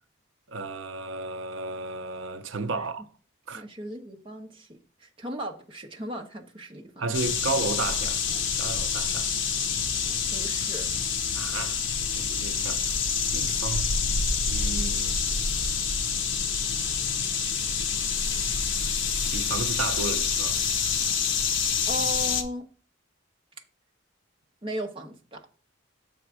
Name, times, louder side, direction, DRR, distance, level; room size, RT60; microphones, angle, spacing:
voice 1, 0.5-3.1 3.5-3.6 7.0-8.2 8.5-9.3 11.3-11.8 12.1-13.0 13.3-14.2 14.5-15.2 19.3-20.6, right 3 dB, 70° right, 0.5 m, -33 dB
voice 2, 3.5-7.1 10.3-10.9 21.9-22.7 24.6-25.5, equal, 25° right, 0.9 m, -36 dB
sound 1, 7.1-22.4, left 6 dB, 65° left, 0.9 m, -27 dB
7.0 x 3.5 x 6.1 m
head